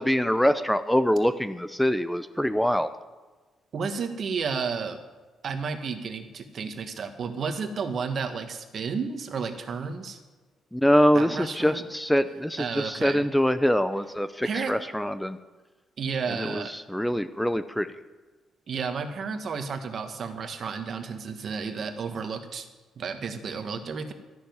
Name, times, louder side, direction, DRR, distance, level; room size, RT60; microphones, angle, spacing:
voice 1, 0.0-2.9 10.7-15.4 16.3-17.9, equal, 5° left, 12 dB, 0.6 m, -24 dB
voice 2, 3.7-5.0 5.4-10.2 11.1-11.8 12.6-13.2 14.4-14.8 16.0-16.7 18.7-22.7 23.0-24.1, right 5 dB, 55° right, 7 dB, 1.5 m, -32 dB
13.0 x 7.0 x 9.4 m, 1.3 s
cardioid pair, 90°, 0 cm